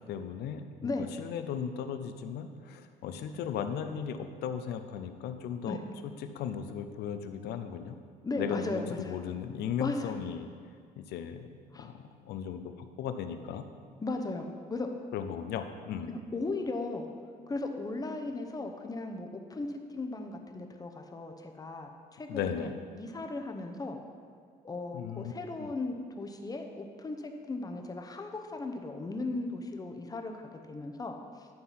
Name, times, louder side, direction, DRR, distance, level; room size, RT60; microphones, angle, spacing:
voice 1, 0.1-5.8 6.3-8.0 8.4-10.5 11.0-11.5 11.8-13.6 15.1-16.1 22.3-22.7 24.9-25.3 25.6-25.7, left 8 dB, 75° left, 8 dB, 0.6 m, -36 dB
voice 2, 8.2-9.2 9.8-10.1 11.7-11.9 14.0-14.9 16.1-17.1 17.5-24.0 24.6-31.5, left 2 dB, 20° left, 4 dB, 0.8 m, -37 dB
11.0 x 3.9 x 5.6 m, 2.1 s
cardioid pair, 110°, 17 cm